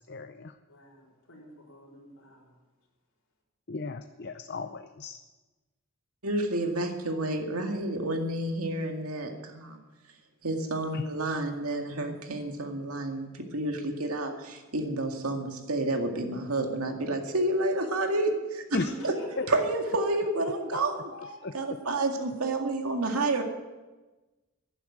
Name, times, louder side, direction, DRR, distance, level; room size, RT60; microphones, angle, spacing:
voice 1, 0.0-0.5 3.7-5.2 10.9-11.0 18.7-18.9 21.4-21.5, left 3 dB, 50° left, 9 dB, 0.6 m, -35 dB
voice 2, 0.7-2.5 18.7-19.5 20.5-21.8, left 1 dB, 70° left, -3 dB, 4.5 m, -45 dB
voice 3, 6.2-9.8 10.4-18.6 19.0-19.1 19.5-20.9 21.5-23.4, right 2 dB, 90° right, 3 dB, 2.1 m, -29 dB
11.0 x 11.0 x 9.2 m, 1.2 s
head